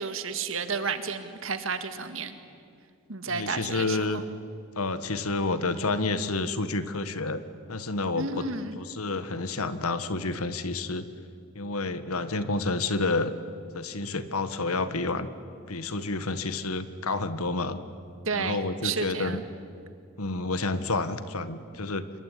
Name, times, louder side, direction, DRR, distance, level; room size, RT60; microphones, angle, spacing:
voice 1, 0.0-2.3 3.1-4.2 8.2-8.8 18.3-19.4, right 4 dB, 65° right, 9 dB, 2.0 m, -32 dB
voice 2, 3.3-4.2 4.8-7.4 7.7-8.5 8.8-11.1 11.5-13.3 13.7-15.3 15.7-17.8 18.3-19.4 20.2-22.0, left 3 dB, 85° left, 12 dB, 1.6 m, -29 dB
26.0 x 22.5 x 10.0 m, 2.4 s
head